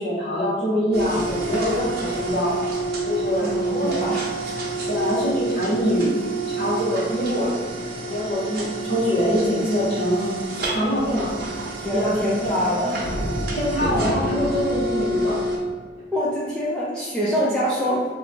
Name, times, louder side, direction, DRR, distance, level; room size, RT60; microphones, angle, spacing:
voice 1, 0.0-2.6 3.0-4.1 4.9-6.1 6.5-7.6 8.1-10.3 10.7-11.3 11.9-12.2 12.4-12.5 13.5-15.4, equal, 55° left, -12 dB, 0.9 m, -24 dB
sound 1, 0.9-15.6, right 2 dB, 60° right, 0.7 m, -28 dB
voice 2, 3.4-4.3 11.8-13.0 16.1-18.1, equal, 5° left, -8 dB, 0.4 m, -24 dB
2.9 x 2.2 x 3.7 m, 1.6 s
head